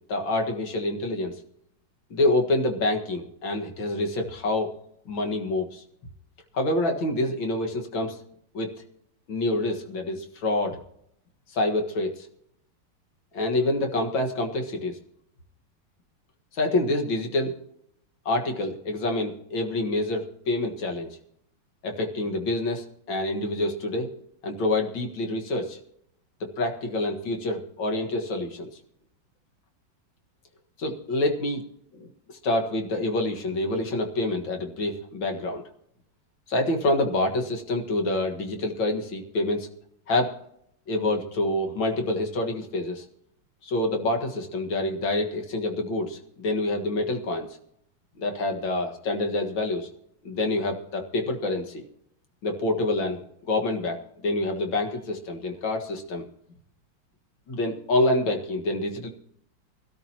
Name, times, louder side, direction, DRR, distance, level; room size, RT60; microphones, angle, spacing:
voice 1, 0.1-1.4 2.1-4.7 5.1-5.8 6.5-8.2 8.5-8.7 9.3-10.8 11.5-12.3 13.3-15.0 16.5-17.5 18.3-21.2 21.8-24.1 24.4-25.8 26.4-28.7 30.8-31.6 31.9-35.6 36.5-39.7 40.1-40.3 40.9-43.0 43.6-47.6 48.2-49.9 50.2-51.8 52.4-56.2 57.5-59.1, left 2 dB, 65° left, 3 dB, 2.4 m, -27 dB
23.0 x 13.0 x 2.9 m, 0.73 s
omnidirectional pair, 2.4 m